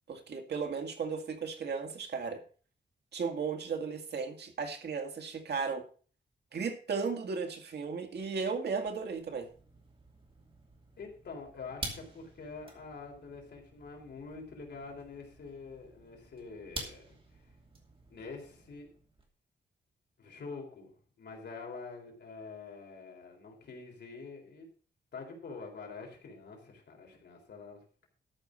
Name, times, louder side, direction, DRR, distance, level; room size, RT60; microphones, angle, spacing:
voice 1, 0.1-2.4 3.1-5.8 6.5-9.5, right 5 dB, 65° right, 5 dB, 2.0 m, -35 dB
sound 1, 8.9-19.3, right 2 dB, 30° right, 2.6 m, -49 dB
voice 2, 11.0-17.5 18.1-18.9 20.2-24.7 25.1-28.1, left 4 dB, 65° left, 1 dB, 3.9 m, -46 dB
13.0 x 5.6 x 6.3 m, 0.41 s
wide cardioid pair, 170°, 18 cm